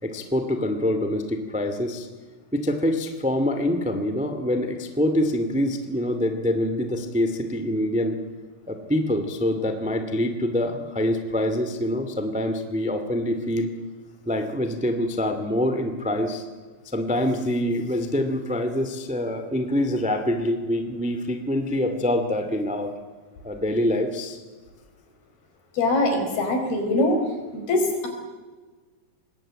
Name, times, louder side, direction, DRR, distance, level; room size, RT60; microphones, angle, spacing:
voice 1, 0.0-2.1 2.5-8.2 8.7-13.7 14.2-16.4 16.8-22.9 23.4-24.4, left 1 dB, 5° right, 7 dB, 0.6 m, -25 dB
voice 2, 25.7-27.2 27.5-28.1, left 2 dB, 70° left, 4 dB, 6.4 m, -22 dB
25.5 x 20.5 x 9.0 m, 1.3 s
omnidirectional pair, 4.6 m